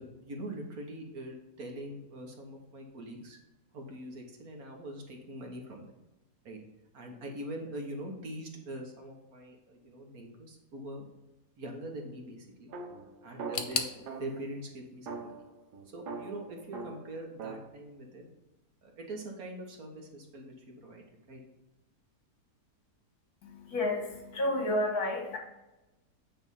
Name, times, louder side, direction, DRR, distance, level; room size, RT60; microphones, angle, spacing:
voice 1, 0.0-3.4 3.7-5.9 6.5-6.6 6.9-11.0 11.6-12.7 13.2-15.3 15.9-18.3 18.8-21.4, right 1 dB, 65° right, 1 dB, 1.7 m, -43 dB
sound 1, 12.7-14.5 15.1-17.7, right 4 dB, 85° right, 1.6 m, -42 dB
sound 2, 13.5-16.4 16.7-17.5 17.8-17.9 18.7-18.8, left 7 dB, 85° left, 1.4 m, -40 dB
voice 2, 23.4-25.4, left 1 dB, 70° left, 0 dB, 2.2 m, -31 dB
9.2 x 3.4 x 5.4 m, 0.99 s
omnidirectional pair, 1.7 m